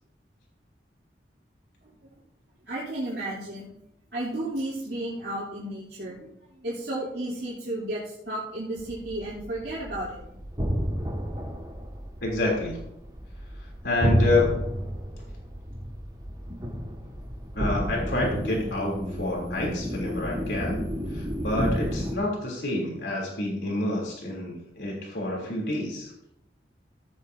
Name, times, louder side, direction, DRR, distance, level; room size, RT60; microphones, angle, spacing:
voice 1, 2.6-3.7 4.1-10.2, right 1 dB, 65° right, -8 dB, 3.3 m, -33 dB
sound 1, 8.8-22.2, equal, 25° right, 1.7 m, -30 dB
voice 2, 12.2-12.8 13.8-14.5 17.5-20.8 21.1-26.1, left 2 dB, 80° left, -2 dB, 3.1 m, -28 dB
16.0 x 8.6 x 2.7 m, 0.81 s
head